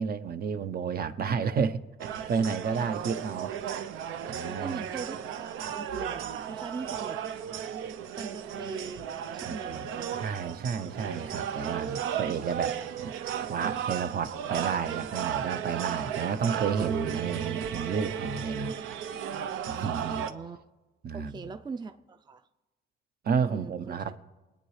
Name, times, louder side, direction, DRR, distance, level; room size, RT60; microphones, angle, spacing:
voice 1, 0.0-3.5 4.3-4.8 9.5-9.8 10.2-12.8 13.0-13.1 13.5-18.8 19.7-20.3 21.0-21.4 23.2-24.2, right 6 dB, 50° right, 0.8 m, -31 dB
sound 1, 2.0-20.3, right 9 dB, 85° right, 0.7 m, -35 dB
voice 2, 2.8-3.1 4.6-5.2 5.7-7.2 8.2-10.3 19.8-20.6 21.1-22.5 23.4-24.1, right 4 dB, 20° right, 0.5 m, -41 dB
21.5 x 8.9 x 3.2 m
cardioid pair, 90°, 20 cm